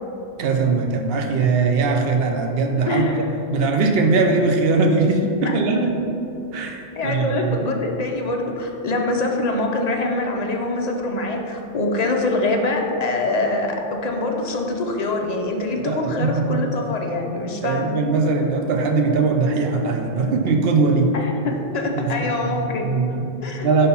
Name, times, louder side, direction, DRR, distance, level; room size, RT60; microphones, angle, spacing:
voice 1, 0.4-3.2 3.5-6.0 6.5-7.5 15.8-16.6 17.6-21.1 21.9-23.2 23.6-23.9, right 4 dB, 60° right, 3 dB, 0.9 m, -20 dB
voice 2, 2.9-3.3 5.4-5.6 7.0-18.0 21.1-22.9 23.4-23.7, left 2 dB, 45° left, 2 dB, 0.6 m, -24 dB
5.2 x 4.3 x 5.4 m, 2.8 s
omnidirectional pair, 1.2 m